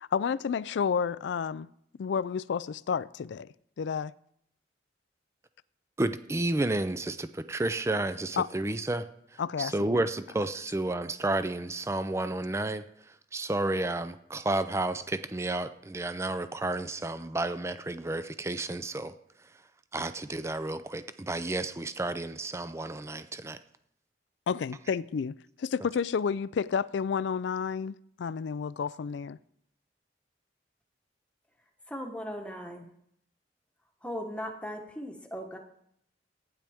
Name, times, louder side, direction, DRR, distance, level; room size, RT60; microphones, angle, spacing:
voice 1, 0.0-1.7 2.0-3.5 3.8-4.1 8.4-8.5 9.4-10.0 24.5-29.4, left 6 dB, 75° left, 0.3 m, -31 dB
voice 2, 6.0-19.1 19.9-23.6, right 2 dB, 15° right, 0.4 m, -31 dB
voice 3, 31.9-32.9 34.0-35.6, equal, 5° left, 1.1 m, -38 dB
15.0 x 9.8 x 3.5 m
head